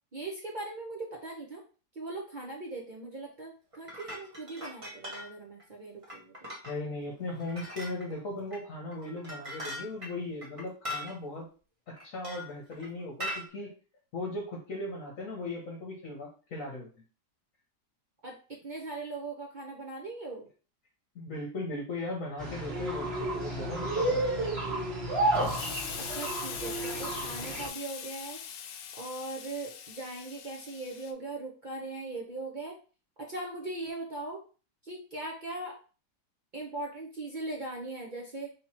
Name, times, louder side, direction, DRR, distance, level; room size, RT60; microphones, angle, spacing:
voice 1, 0.1-1.6 1.9-6.3 18.2-20.4 25.9-28.4 29.0-32.7 33.2-34.4 34.8-35.7 36.5-38.5, right 2 dB, 70° right, -1 dB, 0.4 m, -39 dB
sound 1, 3.7-5.3 5.6-5.7 6.0-6.7 7.4-8.1 8.5-8.6 8.9-11.1 12.0-12.9 13.2-13.5, left 1 dB, 25° right, 0.9 m, -40 dB
voice 2, 6.7-11.5 11.9-13.7 14.1-16.9 21.1-24.2, left 2 dB, 55° left, -2 dB, 1.2 m, -38 dB
sound 2, 22.4-27.7, right 2 dB, 40° right, 1.2 m, -31 dB
Explosion, 25.3-31.1, left 8 dB, 90° left, 1.3 m, -41 dB
3.6 x 2.9 x 4.2 m, 0.37 s
omnidirectional pair, 1.8 m